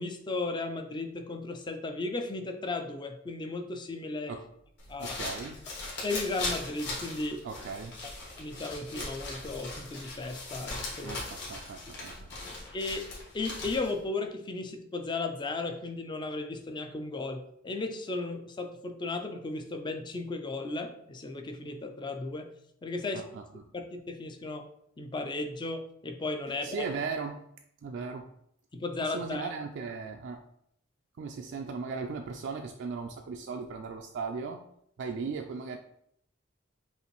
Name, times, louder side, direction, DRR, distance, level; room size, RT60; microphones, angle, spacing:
voice 1, 0.0-4.4 4.9-5.2 6.0-7.4 8.0-8.1 8.4-11.2 12.7-13.1 13.3-22.5 22.8-23.3 23.7-24.7 25.0-26.9 28.7-29.5, left 3 dB, 20° left, 6 dB, 0.4 m, -35 dB
sound 1, 4.8-14.0, left 2 dB, 60° left, 1.5 m, -39 dB
voice 2, 5.0-5.6 7.4-7.9 11.0-12.2 23.1-23.4 26.6-27.4 27.8-28.3 29.0-30.4 31.2-34.6 35.0-35.8, right 5 dB, 60° right, 3 dB, 0.3 m, -37 dB
5.4 x 2.5 x 3.0 m, 0.73 s
head